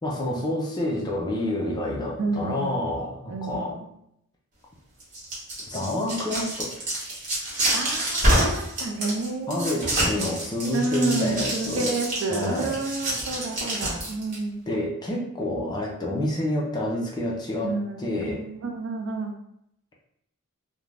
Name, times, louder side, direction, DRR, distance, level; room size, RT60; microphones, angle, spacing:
voice 1, 0.0-3.8 5.7-6.7 9.5-11.9 12.3-12.8 14.7-18.4, left 1 dB, 20° left, -2 dB, 0.4 m, -28 dB
voice 2, 2.1-2.9 3.3-3.9 7.7-10.1 10.7-14.6 17.6-19.3, right 3 dB, 60° right, 3 dB, 0.4 m, -30 dB
sound 1, 5.0-14.4, right 1 dB, 35° right, 1.0 m, -27 dB
2.4 x 2.1 x 3.2 m, 0.77 s
head